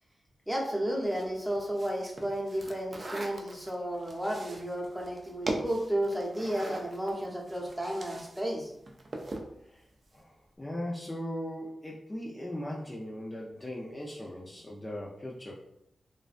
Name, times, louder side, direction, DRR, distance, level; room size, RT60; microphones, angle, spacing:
voice 1, 0.5-8.7, right 1 dB, 10° right, -3 dB, 0.7 m, -32 dB
sound 1, 1.1-8.4 8.7-9.5, right 2 dB, 45° right, 0.3 m, -41 dB
voice 2, 10.1-15.5, left 1 dB, 20° left, -3 dB, 0.4 m, -39 dB
2.5 x 2.1 x 2.4 m, 0.78 s
cardioid pair, 75°, 0 cm